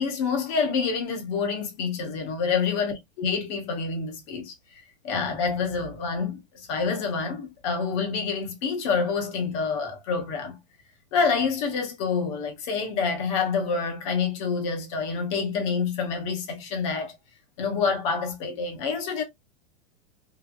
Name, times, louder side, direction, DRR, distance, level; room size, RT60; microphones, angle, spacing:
voice 1, 0.0-4.5 5.0-10.6 11.1-17.2 17.6-19.2, left 5 dB, 30° left, 0.8 m, -27 dB
3.2 x 2.9 x 2.2 m
supercardioid pair, 170°, 32 cm